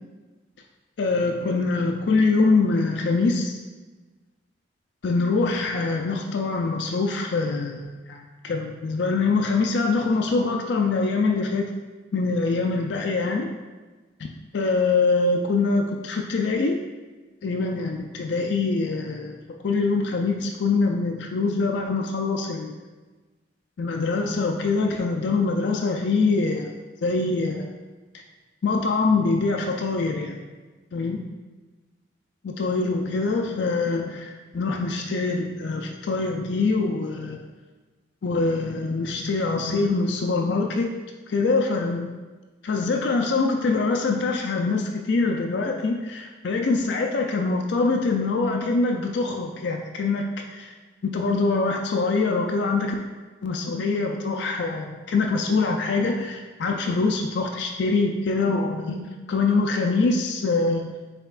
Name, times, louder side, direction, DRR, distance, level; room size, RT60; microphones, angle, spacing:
voice 1, 1.0-3.6 5.0-11.7 12.1-13.5 14.5-16.7 17.4-19.4 19.6-22.7 23.8-26.7 27.0-27.7 28.6-30.4 30.9-31.2 32.4-37.4 38.2-40.9 41.3-42.1 42.6-50.7 51.0-53.0 53.4-60.9, left 3 dB, 60° left, 2 dB, 0.4 m, -24 dB
5.7 x 3.5 x 2.4 m, 1.3 s
head